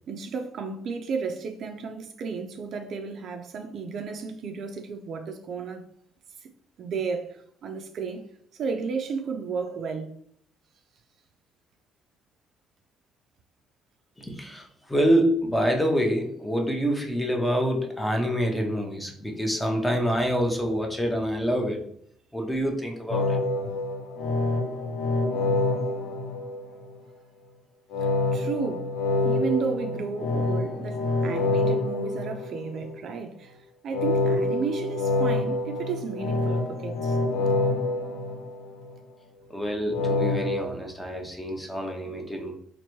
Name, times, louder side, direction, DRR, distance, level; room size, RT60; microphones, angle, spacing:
voice 1, 0.1-5.8 6.4-6.5 6.8-8.2 8.5-10.1 28.0-28.9 29.2-33.6 33.8-37.2, right 5 dB, 50° right, 0.4 m, -33 dB
voice 2, 14.2-21.8 22.3-23.4 39.5-42.5, equal, 5° left, 0.6 m, -26 dB
sound 1, 23.1-27.0 27.9-33.0 33.9-39.0 39.9-40.7, left 2 dB, 85° left, 0.6 m, -27 dB
4.4 x 2.5 x 3.0 m
cardioid pair, 150°, 0 cm